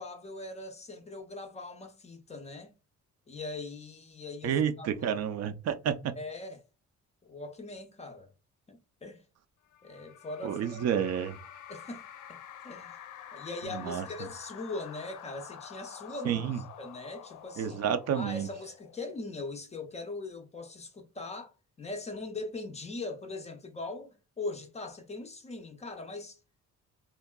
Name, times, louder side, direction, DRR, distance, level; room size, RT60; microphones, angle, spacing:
voice 1, 0.0-2.7 3.3-5.2 6.2-6.6 7.2-8.3 8.7-9.2 9.8-10.9 11.7-12.4 12.6-13.0 13.3-17.8 18.1-26.4, left 3 dB, 25° left, 0.4 m, -41 dB
voice 2, 4.4-6.1 10.4-11.4 13.7-14.0 16.3-16.6 17.6-18.5, right 8 dB, 60° right, 0.4 m, -30 dB
sound 1, 9.7-19.4, left 9 dB, 85° left, 0.6 m, -48 dB
3.6 x 2.2 x 2.2 m
cardioid pair, 175°, 30 cm